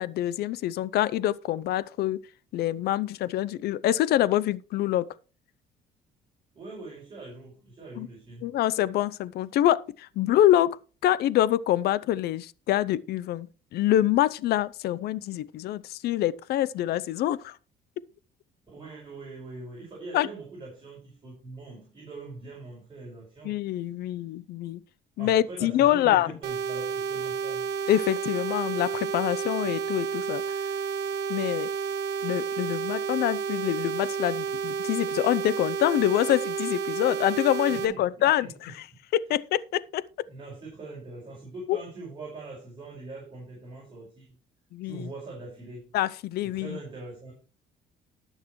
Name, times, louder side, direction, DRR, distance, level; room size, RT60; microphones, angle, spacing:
voice 1, 0.0-2.2 2.5-5.0 8.0-8.1 8.4-10.8 11.0-17.6 20.1-20.3 23.4-24.8 25.2-26.3 27.9-30.4 31.3-31.7 32.2-38.7 39.1-40.0 41.7-41.8 44.7-45.1 45.9-46.8, left 13 dB, 70° left, 0.6 m, -25 dB
voice 2, 6.5-8.5 18.7-23.5 25.2-27.7 37.7-38.5 40.3-44.3 44.8-45.9 46.4-47.3, right 3 dB, 30° right, 5.6 m, -42 dB
sound 1, 26.4-37.8, right 6 dB, 70° right, 1.8 m, -31 dB
19.0 x 6.5 x 3.1 m
cardioid pair, 110°, 17 cm